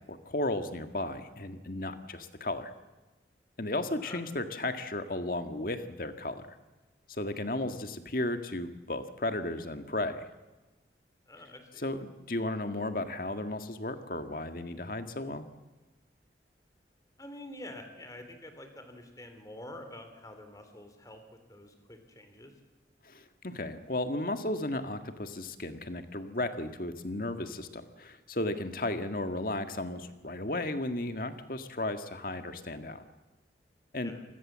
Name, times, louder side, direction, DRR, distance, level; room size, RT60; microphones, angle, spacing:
voice 1, 0.0-2.7 3.6-6.6 7.1-10.3 11.8-15.5 23.0-33.0 33.9-34.1, left 2 dB, 50° left, 8 dB, 1.7 m, -34 dB
voice 2, 11.3-11.9 17.2-22.5 34.0-34.2, left 1 dB, 20° left, 7 dB, 3.2 m, -47 dB
27.5 x 20.5 x 7.5 m, 1.1 s
head